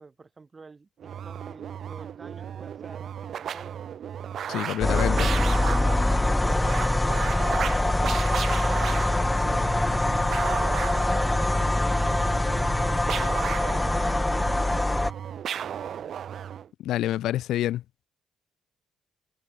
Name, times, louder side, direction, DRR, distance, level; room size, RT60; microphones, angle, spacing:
voice 1, 0.0-3.8 7.2-12.8 13.5-16.2, right 4 dB, 30° right, 4.6 m, -49 dB
sound 1, 1.0-16.7, right 9 dB, 60° right, 1.1 m, -35 dB
voice 2, 4.5-5.3 16.8-17.8, left 13 dB, 80° left, 0.4 m, -27 dB
sound 2, 4.8-15.1, left 2 dB, 10° left, 0.9 m, -24 dB
cardioid pair, 90°, 0 cm